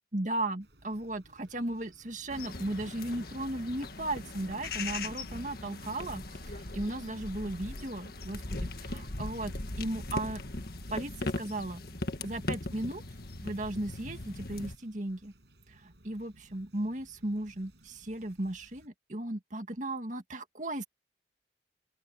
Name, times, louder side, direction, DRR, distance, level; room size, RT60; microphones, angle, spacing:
voice 1, 0.1-10.4 10.9-11.8 12.2-13.0 13.4-15.3 15.7-20.8, right 1 dB, 45° right, 2.0 m, -36 dB
Fowl / Chirp tweet, 0.6-18.9, right 1 dB, 75° right, 6.3 m, -60 dB
sound 1, 2.3-14.8, left 2 dB, 60° left, 1.7 m, -39 dB
open air
head